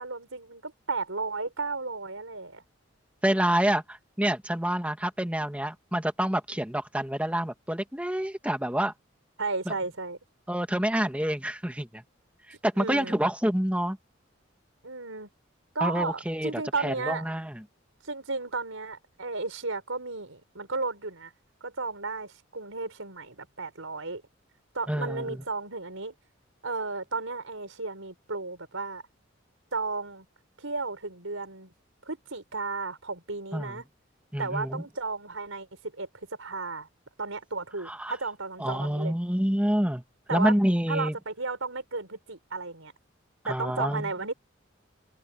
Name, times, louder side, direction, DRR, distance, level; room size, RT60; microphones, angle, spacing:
voice 1, 0.0-2.6 9.4-10.2 12.8-13.2 14.8-15.3 15.8-17.3 18.0-21.3 21.6-24.2 24.7-26.1 26.6-29.0 29.7-30.3 30.6-31.7 32.1-33.8 34.4-36.1 36.4-36.9 37.2-39.1 40.3-40.5 40.9-42.9 43.5-44.3, right 3 dB, 90° right, 5.1 m, -34 dB
voice 2, 3.2-8.9 9.7-9.8 10.5-12.0 12.6-14.0 15.8-17.6 24.9-25.4 33.5-33.8 34.3-34.8 37.8-38.1 38.6-40.0 40.3-41.2 43.4-44.1, equal, 5° right, 1.9 m, -27 dB
head